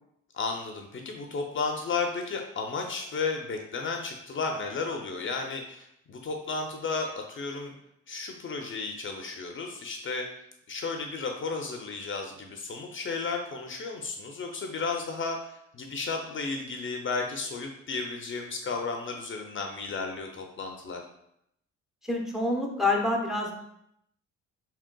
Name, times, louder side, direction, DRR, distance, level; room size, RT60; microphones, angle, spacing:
voice 1, 0.3-7.7 8.1-10.3 10.7-21.0, left 4 dB, 40° left, 3 dB, 0.5 m, -33 dB
voice 2, 22.1-23.5, left 2 dB, ahead, 0 dB, 0.7 m, -27 dB
4.3 x 3.7 x 2.2 m, 0.76 s
cardioid pair, 90°, 30 cm